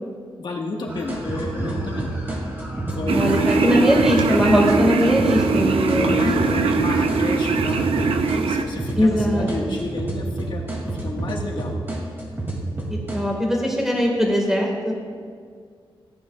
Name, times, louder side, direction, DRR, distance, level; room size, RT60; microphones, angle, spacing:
voice 1, 0.4-2.1 3.0-3.8 5.9-10.6 10.9-11.7, left 2 dB, 60° left, 0 dB, 1.5 m, -31 dB
sound 1, 0.9-13.2, right 2 dB, 25° right, 2.3 m, -29 dB
voice 2, 3.1-6.5 9.0-9.8 12.9-14.9, equal, 5° right, -1 dB, 1.8 m, -21 dB
sound 2, 3.1-8.6, right 4 dB, 85° right, 0.6 m, -21 dB
15.5 x 9.7 x 2.4 m, 2.1 s
wide cardioid pair, 155°, 9 cm